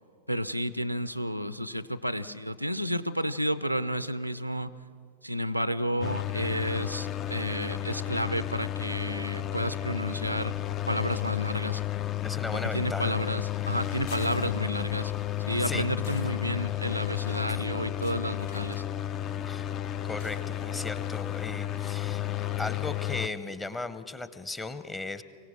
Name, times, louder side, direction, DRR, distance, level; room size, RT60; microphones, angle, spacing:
voice 1, 0.3-4.7 5.2-10.6 10.9-11.8 12.7-15.1 15.4-18.8, equal, 90° right, 15 dB, 0.5 m, -31 dB
sound 1, 6.0-23.3, left 12 dB, 30° left, 0.4 m, -32 dB
voice 2, 12.2-13.2 15.6-15.9 17.5-17.6 19.4-19.7 20.0-22.2 22.6-25.2, left 3 dB, 15° left, 13 dB, 0.9 m, -36 dB
sound 2, 13.7-21.7, left 5 dB, 60° left, 1.9 m, -53 dB
23.5 x 17.5 x 6.4 m, 2.5 s
figure-of-eight pair, 90°, 0 cm